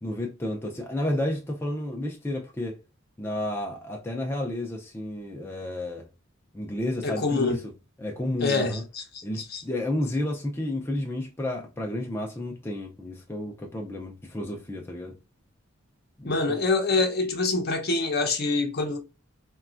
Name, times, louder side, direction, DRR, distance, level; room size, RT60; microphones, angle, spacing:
voice 1, 0.0-2.8 3.2-6.1 6.5-7.7 8.0-8.8 9.2-15.2 16.2-16.6, left 1 dB, 10° left, 0.4 m, -31 dB
voice 2, 7.0-7.6 8.4-9.6 16.2-19.0, left 3 dB, 50° left, 0.6 m, -26 dB
4.0 x 2.2 x 2.4 m
head